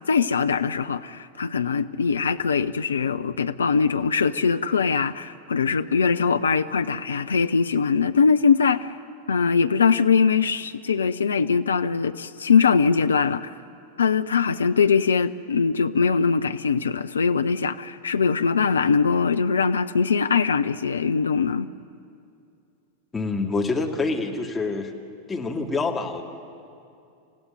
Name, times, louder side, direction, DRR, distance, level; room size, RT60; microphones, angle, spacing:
voice 1, 0.1-8.9 9.3-13.5 14.0-21.7, left 5 dB, 70° left, 11 dB, 0.5 m, -22 dB
voice 2, 23.1-24.9 25.3-26.2, left 3 dB, 15° left, 1 dB, 2.3 m, -26 dB
28.0 x 15.5 x 9.4 m, 2.5 s
figure-of-eight pair, 90°, 0 cm